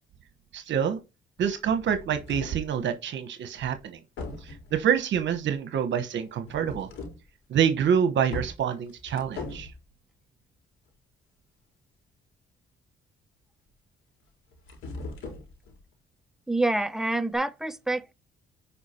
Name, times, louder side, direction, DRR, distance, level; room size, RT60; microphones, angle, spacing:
voice 1, 0.5-1.0 1.4-4.0 4.5-6.9 7.5-9.7, right 8 dB, 65° right, 1.1 m, -26 dB
sound 1, 1.4-2.7 3.6-3.8 4.2-4.8 6.4-7.3 7.7-7.8 8.3-9.8 14.3-15.8 17.3-17.4, left 2 dB, 85° left, 4.3 m, -40 dB
voice 2, 16.5-18.1, right 2 dB, ahead, 0.7 m, -27 dB
10.0 x 4.9 x 4.4 m
cardioid pair, 90°, 20 cm